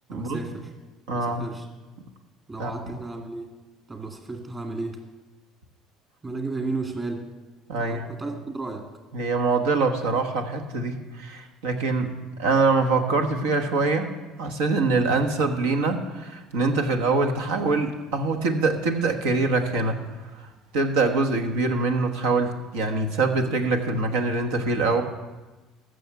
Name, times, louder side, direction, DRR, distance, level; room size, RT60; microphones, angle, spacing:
voice 1, 0.1-0.7 1.1-1.7 2.5-3.5 3.9-5.0 6.2-7.3 7.8-8.9, right 3 dB, 30° right, 2 dB, 2.1 m, -33 dB
voice 2, 1.1-1.5 2.6-2.7 7.7-8.1 9.1-12.1 12.4-14.1 14.4-20.0 20.4-20.5 20.7-25.0, right 3 dB, 75° right, 4 dB, 1.2 m, -24 dB
14.5 x 6.3 x 6.9 m, 1.2 s
hypercardioid pair, 65°, 0 cm